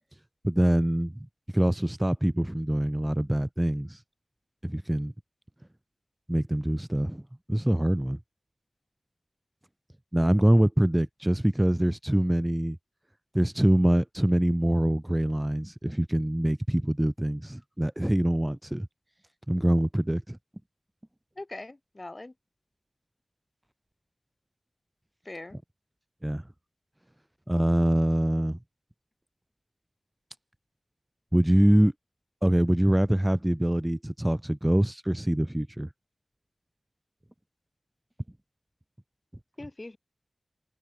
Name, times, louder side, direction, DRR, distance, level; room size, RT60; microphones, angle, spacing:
voice 1, 0.4-1.1 1.5-4.0 4.6-5.1 6.3-7.2 7.5-8.2 10.1-12.8 13.3-18.9 19.5-20.4 26.2-26.4 27.5-28.6 31.3-31.9 32.4-35.9, right 1 dB, 10° right, 1.6 m, -24 dB
voice 2, 21.4-22.3 25.2-25.6 39.6-40.0, left 2 dB, 35° left, 6.3 m, -41 dB
wide cardioid pair, 75°, 0 cm